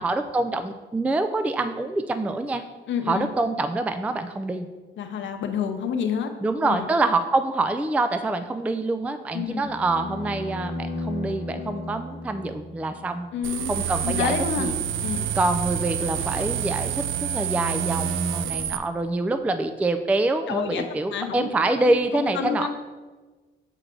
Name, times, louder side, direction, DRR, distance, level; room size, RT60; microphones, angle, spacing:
voice 1, 0.0-2.6 3.1-4.7 6.4-13.3 13.7-14.7 15.4-22.7, right 2 dB, 5° right, 8 dB, 0.3 m, -26 dB
voice 2, 2.9-3.3 5.0-6.3 6.6-6.9 9.3-9.7 13.3-13.7 14.0-14.7 15.0-15.3 20.5-20.8 21.1-21.5 21.8-22.7, left 7 dB, 70° left, 5 dB, 0.8 m, -28 dB
sound 1, 9.6-13.8, left 1 dB, 50° left, 1.1 m, -35 dB
sound 2, 13.4-18.8, right 9 dB, 85° right, 0.4 m, -28 dB
6.4 x 4.6 x 3.8 m, 1.3 s
cardioid pair, 90°, 20 cm